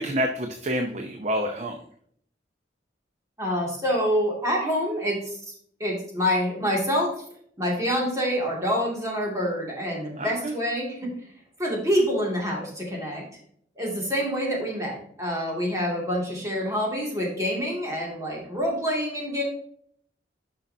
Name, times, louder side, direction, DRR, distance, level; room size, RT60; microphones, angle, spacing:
voice 1, 0.0-1.8 10.2-10.5, equal, 40° right, 4 dB, 0.7 m, -28 dB
voice 2, 3.4-5.4 5.8-7.2 7.6-11.1 11.6-13.2 13.8-19.4, equal, 20° right, -3 dB, 2.4 m, -26 dB
10.0 x 5.7 x 2.8 m, 0.62 s
head